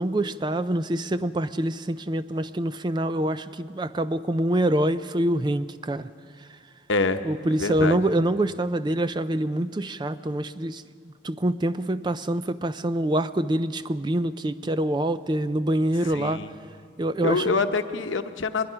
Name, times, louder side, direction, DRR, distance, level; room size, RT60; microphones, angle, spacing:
voice 1, 0.0-6.1 7.2-16.4 17.0-17.6, right 1 dB, 25° right, 13 dB, 0.4 m, -25 dB
voice 2, 6.9-7.2 7.6-8.0 16.1-16.5 17.2-18.7, left 3 dB, 85° left, 8 dB, 0.9 m, -25 dB
22.0 x 20.5 x 5.7 m, 2.4 s
head